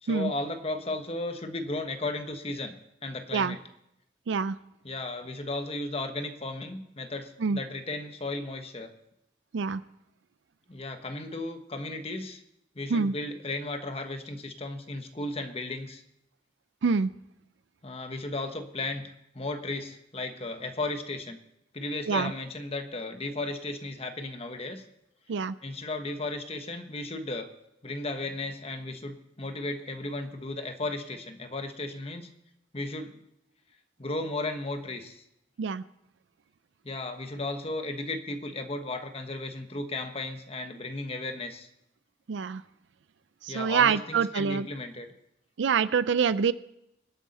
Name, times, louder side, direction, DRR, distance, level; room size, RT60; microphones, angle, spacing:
voice 1, 0.0-2.7 3.0-3.6 4.8-8.9 10.7-12.4 12.7-16.0 17.8-21.4 21.7-24.8 25.6-27.5 27.8-32.3 32.7-33.2 34.0-35.2 36.8-41.7 43.5-45.1, left 2 dB, 30° left, 7 dB, 1.2 m, -35 dB
voice 2, 42.3-42.6 43.4-44.7 45.6-46.5, right 6 dB, 75° right, 16 dB, 0.4 m, -25 dB
25.0 x 8.4 x 4.2 m, 0.79 s
head